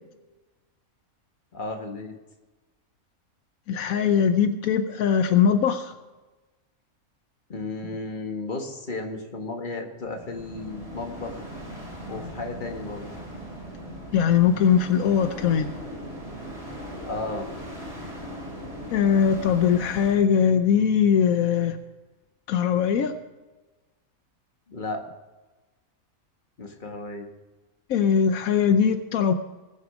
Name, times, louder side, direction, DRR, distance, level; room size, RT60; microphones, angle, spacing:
voice 1, 1.5-2.1 7.5-11.5 12.1-13.1 17.0-17.5 24.7-25.0 26.6-27.3, left 2 dB, 35° left, 3 dB, 1.7 m, -34 dB
voice 2, 3.7-5.9 14.1-15.7 18.9-21.8 22.5-23.2 27.9-29.3, left 7 dB, 80° left, 9 dB, 1.1 m, -21 dB
sound 1, 10.0-20.2, equal, 25° right, 3.4 m, -39 dB
20.5 x 7.2 x 4.9 m, 1.2 s
omnidirectional pair, 1.5 m